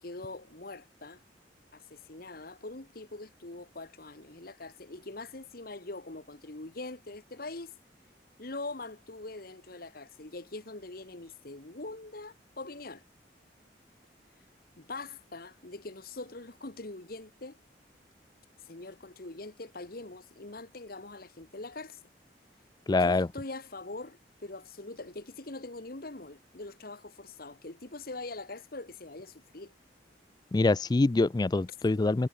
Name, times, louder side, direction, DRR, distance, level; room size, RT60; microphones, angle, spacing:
voice 1, 0.0-1.2 1.7-7.7 8.4-13.0 14.8-17.6 18.7-22.0 22.9-29.7, left 2 dB, 55° left, 1.6 m, -43 dB
voice 2, 22.9-23.3 30.5-32.3, left 2 dB, 25° left, 0.4 m, -25 dB
head